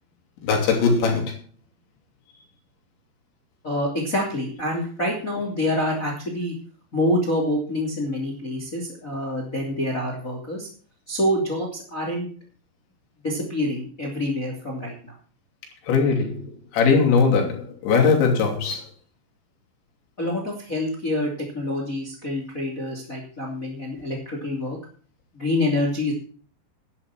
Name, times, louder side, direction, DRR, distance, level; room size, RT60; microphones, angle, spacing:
voice 1, 0.4-1.4 15.9-18.9, left 5 dB, 75° left, 5.1 m, -20 dB
voice 2, 3.6-6.5 6.9-10.7 11.1-12.3 13.2-15.1 20.2-24.8 25.3-26.1, left 1 dB, 20° left, 2.5 m, -26 dB
11.0 x 10.0 x 6.0 m
omnidirectional pair, 5.3 m